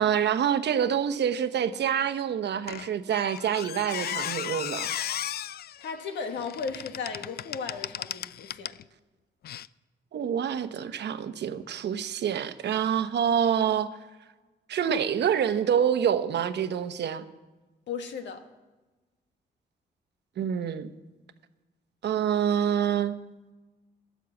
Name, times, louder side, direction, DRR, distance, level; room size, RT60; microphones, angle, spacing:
voice 1, 0.0-4.9 10.1-14.0 14.7-17.2 20.4-20.9 22.0-23.1, right 8 dB, 70° right, 1.0 m, -26 dB
Squeak, 2.7-8.8 9.4-9.7, left 11 dB, 60° left, 0.4 m, -35 dB
voice 2, 5.8-8.7 17.9-18.4, left 5 dB, 85° left, 1.6 m, -35 dB
13.5 x 10.0 x 7.1 m
cardioid pair, 100°, 18 cm